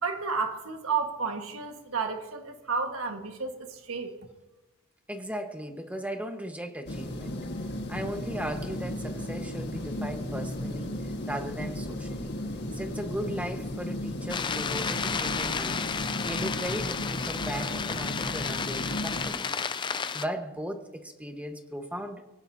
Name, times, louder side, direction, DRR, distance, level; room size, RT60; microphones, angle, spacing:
voice 1, 0.0-4.1, right 5 dB, 80° right, 4 dB, 1.6 m, -31 dB
voice 2, 5.1-7.4 7.9-12.3 12.7-15.9 16.2-19.6 20.1-22.2, equal, 5° right, 5 dB, 1.3 m, -37 dB
sound 1, 6.9-19.3, left 1 dB, 55° left, 1.6 m, -35 dB
sound 2, 14.3-20.3, left 6 dB, 20° left, 0.4 m, -32 dB
24.0 x 17.0 x 2.8 m, 1.1 s
head